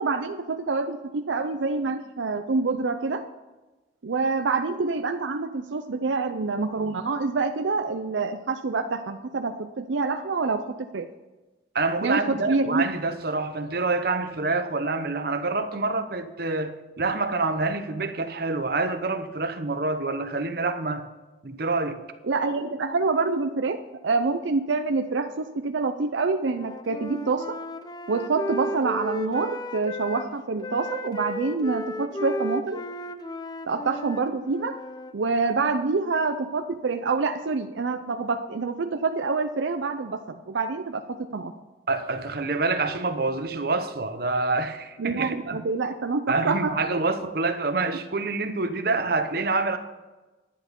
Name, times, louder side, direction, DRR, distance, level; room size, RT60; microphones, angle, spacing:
voice 1, 0.0-3.2 4.0-10.6 10.9-11.1 12.0-12.9 22.2-27.6 28.1-32.8 33.7-34.8 35.1-41.5 45.0-47.0 47.5-47.6, right 4 dB, 80° right, 0.6 m, -26 dB
voice 2, 11.7-21.1 21.4-22.0 41.9-45.6 46.3-49.8, right 3 dB, 55° right, 0.9 m, -27 dB
Wind instrument woodwind instrument, 26.5-30.3 30.6-35.1, left 1 dB, 20° left, 0.5 m, -34 dB
10.5 x 10.5 x 5.3 m
head